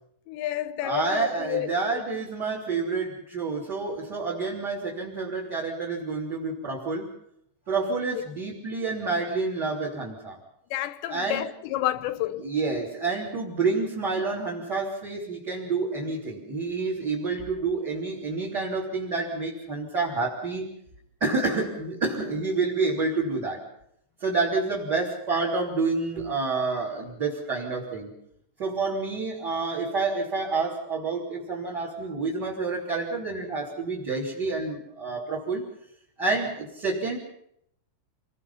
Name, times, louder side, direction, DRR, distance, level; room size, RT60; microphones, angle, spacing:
voice 1, 0.3-1.7 2.1-2.2 10.7-12.4, left 13 dB, 85° left, 3.2 m, -30 dB
voice 2, 0.8-7.1 7.7-10.4 11.1-11.4 12.4-20.7 21.2-23.6 24.2-28.1 28.6-35.6 36.2-37.2, right 3 dB, 25° right, 3.5 m, -28 dB
27.5 x 20.0 x 5.7 m
omnidirectional pair, 4.9 m